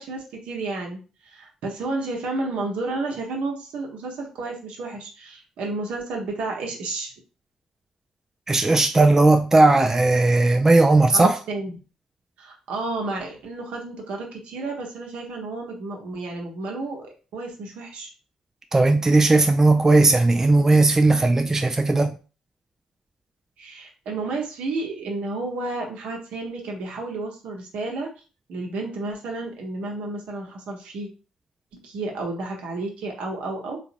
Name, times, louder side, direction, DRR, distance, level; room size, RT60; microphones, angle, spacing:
voice 1, 0.0-7.1 11.1-11.7 12.4-18.1 23.6-28.1 28.5-31.1 31.8-33.8, right 3 dB, 65° right, 0.9 m, -31 dB
voice 2, 8.5-11.4 18.7-22.2, right 2 dB, 20° right, 0.3 m, -17 dB
3.7 x 2.5 x 2.6 m
figure-of-eight pair, 40°, 2 cm